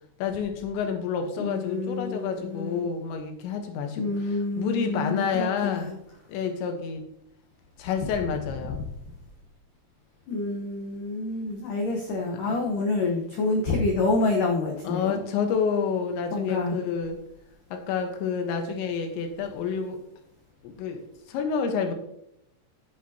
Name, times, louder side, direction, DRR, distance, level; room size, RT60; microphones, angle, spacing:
voice 1, 0.2-5.9 6.3-7.0 7.8-8.8 12.3-12.6 14.8-17.2 17.7-20.0 20.6-21.9, left 6 dB, 85° left, 5 dB, 3.4 m, -29 dB
voice 2, 1.4-2.8 4.0-5.9 10.3-15.2 16.3-16.8, left 3 dB, 65° left, 1 dB, 2.2 m, -28 dB
15.0 x 8.0 x 2.8 m, 0.77 s
omnidirectional pair, 5.1 m